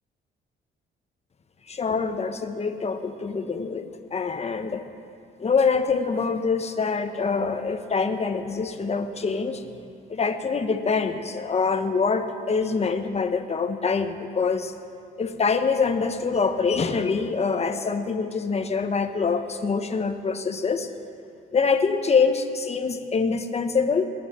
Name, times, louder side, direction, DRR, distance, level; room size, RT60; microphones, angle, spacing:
voice 1, 1.7-4.8 5.4-9.6 10.1-14.7 15.2-20.9 21.5-24.1, left 5 dB, 30° left, 7 dB, 1.1 m, -25 dB
18.0 x 11.0 x 7.5 m, 2.5 s
cardioid pair, 90°, 20 cm